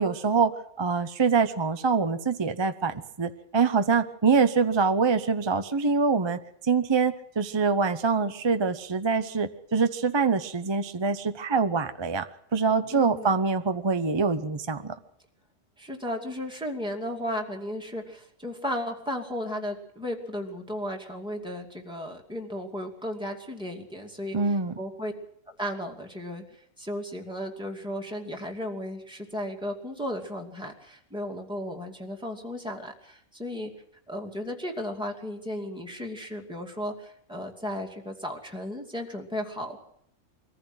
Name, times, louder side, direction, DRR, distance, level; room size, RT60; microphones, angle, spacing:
voice 1, 0.0-15.0 24.3-24.7, right 5 dB, 25° right, 9 dB, 0.7 m, -25 dB
voice 2, 12.9-13.3 15.8-25.1 25.5-33.7 34.1-39.8, equal, 5° right, 0 dB, 2.5 m, -35 dB
22.5 x 15.0 x 7.9 m, 0.73 s
omnidirectional pair, 1.3 m